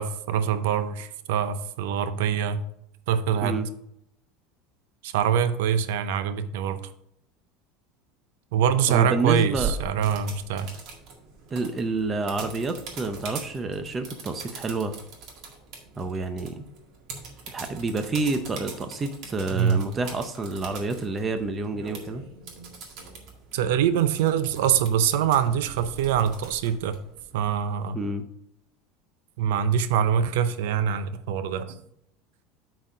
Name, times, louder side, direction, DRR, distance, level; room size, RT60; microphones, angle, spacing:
voice 1, 0.0-2.6 3.1-3.6 5.0-6.8 8.5-10.7 19.5-19.9 23.5-27.0 27.3-28.0 29.4-31.8, right 8 dB, 85° right, 11 dB, 0.6 m, -24 dB
voice 2, 8.9-9.7 11.5-15.0 16.0-16.6 17.5-22.2 27.9-28.3, right 3 dB, 15° right, 7 dB, 0.7 m, -29 dB
sound 1, 9.5-27.5, right 4 dB, 50° right, 1.8 m, -41 dB
8.3 x 4.1 x 5.0 m, 0.75 s
cardioid pair, 160°, 0 cm